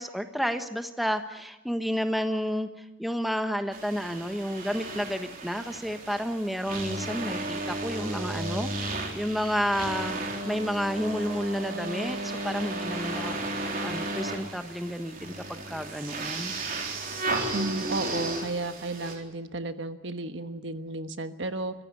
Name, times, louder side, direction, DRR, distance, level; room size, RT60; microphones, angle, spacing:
voice 1, 0.0-10.2 10.4-16.5, equal, ahead, 7 dB, 1.2 m, -31 dB
sound 1, 3.7-19.2, right 2 dB, 45° right, 3.8 m, -34 dB
voice 2, 17.5-21.7, right 2 dB, 65° right, 8 dB, 1.3 m, -33 dB
25.0 x 15.5 x 9.6 m, 1.0 s
head